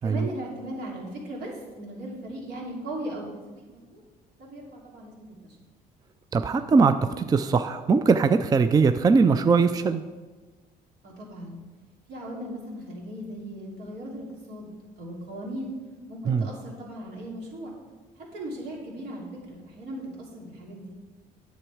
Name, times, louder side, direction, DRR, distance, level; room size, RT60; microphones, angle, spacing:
voice 1, 0.0-4.0 4.4-5.5 11.0-11.6 12.1-14.7 15.0-15.7 16.1-17.7 18.3-20.9, right 1 dB, 75° right, -2 dB, 2.8 m, -38 dB
voice 2, 6.3-10.0 16.3-16.5, right 4 dB, 20° right, 10 dB, 0.4 m, -21 dB
9.1 x 7.0 x 4.8 m, 1.3 s
cardioid pair, 110°, 17 cm